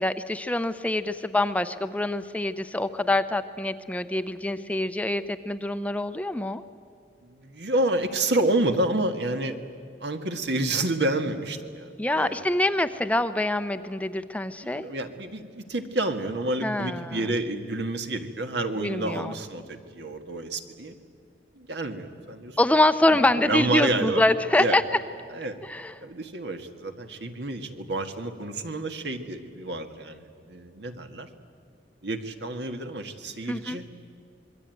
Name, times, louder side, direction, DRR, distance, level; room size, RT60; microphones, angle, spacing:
voice 1, 0.0-6.6 12.0-14.8 16.6-17.2 18.8-19.3 22.6-24.8 25.7-25.9 33.5-33.8, left 1 dB, 10° left, 10 dB, 0.7 m, -25 dB
voice 2, 7.2-9.6 10.0-12.5 14.6-20.9 21.6-22.6 23.1-24.2 24.6-24.8 25.3-25.6 26.0-31.3 32.0-33.9, right 2 dB, 70° right, 7 dB, 1.9 m, -29 dB
26.0 x 22.0 x 9.3 m, 2.4 s
head